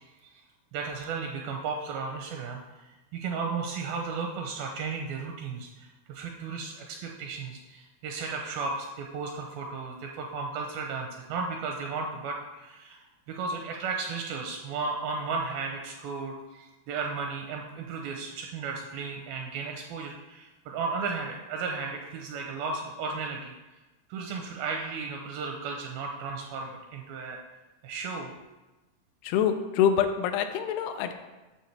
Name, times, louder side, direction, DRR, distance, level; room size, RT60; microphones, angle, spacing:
voice 1, 0.7-23.5 24.1-27.4 27.8-28.3, right 4 dB, 85° right, 2 dB, 2.2 m, -34 dB
voice 2, 29.2-31.1, left 8 dB, 85° left, 7 dB, 2.6 m, -25 dB
9.2 x 6.3 x 3.3 m, 1.1 s
omnidirectional pair, 4.7 m